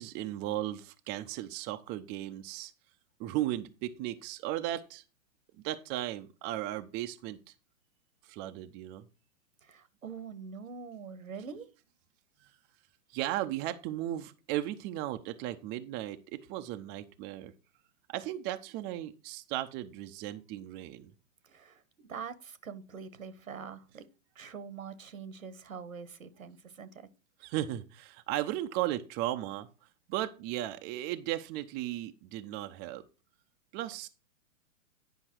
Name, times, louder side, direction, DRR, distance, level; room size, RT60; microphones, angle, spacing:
voice 1, 0.0-2.7 3.2-5.0 5.6-7.4 8.2-9.1 12.4-12.5 13.1-17.5 18.1-21.1 27.4-29.7 30.1-33.0 33.7-34.1, right 14 dB, 25° right, 0.6 m, -36 dB
voice 2, 9.6-11.7 21.5-21.8 22.1-24.1 24.3-27.1, right 6 dB, 85° right, 1.3 m, -44 dB
10.0 x 5.5 x 4.5 m
hypercardioid pair, 115°, 40 cm